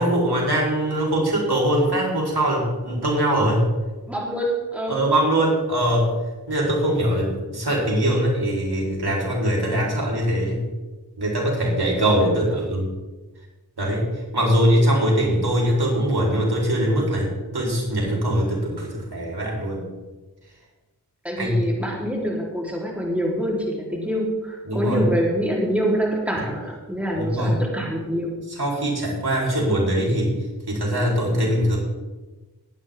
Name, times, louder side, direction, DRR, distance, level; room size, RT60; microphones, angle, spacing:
voice 1, 0.0-3.7 4.9-6.1 6.5-10.6 11.2-12.9 13.8-14.1 14.3-19.9 21.4-21.6 24.6-25.0 26.3-26.4 27.2-27.6 28.5-30.3 30.7-31.8, right 1 dB, 70° right, -2 dB, 4.2 m, -22 dB
voice 2, 4.1-5.0 21.2-28.4, equal, 5° right, -4 dB, 4.0 m, -25 dB
20.5 x 9.1 x 3.8 m, 1.2 s
wide cardioid pair, 60°, 40 cm